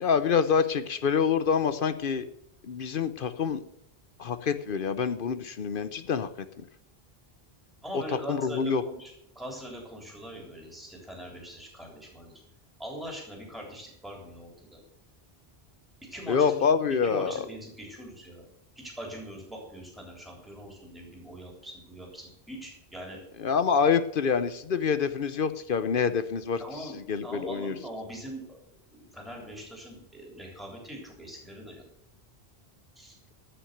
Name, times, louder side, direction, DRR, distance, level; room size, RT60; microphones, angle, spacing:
voice 1, 0.0-2.3 2.6-3.6 4.2-6.3 8.3-8.8 16.3-17.4 23.4-27.7, left 6 dB, 60° left, 11 dB, 0.9 m, -26 dB
voice 2, 7.8-12.3 12.8-14.8 16.1-16.7 17.0-18.5 18.8-23.2 26.6-27.0 27.2-31.8 33.0-33.2, equal, ahead, -1 dB, 3.5 m, -42 dB
14.5 x 6.2 x 6.6 m, 0.77 s
omnidirectional pair, 1.1 m